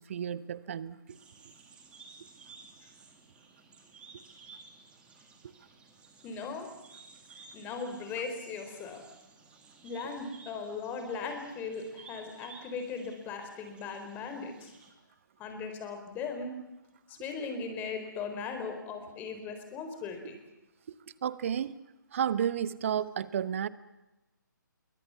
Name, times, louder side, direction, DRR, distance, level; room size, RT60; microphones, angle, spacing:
voice 1, 0.1-1.0 4.1-4.2 21.2-21.8 22.1-23.7, right 9 dB, 40° right, 17 dB, 1.1 m, -31 dB
sound 1, 1.1-14.9, right 4 dB, 10° right, 2.9 m, -55 dB
voice 2, 6.2-6.7 7.5-9.0 9.8-14.7 15.4-16.6 17.1-20.4, left 5 dB, 15° left, 6 dB, 4.0 m, -38 dB
27.0 x 23.5 x 7.0 m, 0.97 s
figure-of-eight pair, 140°, 11 cm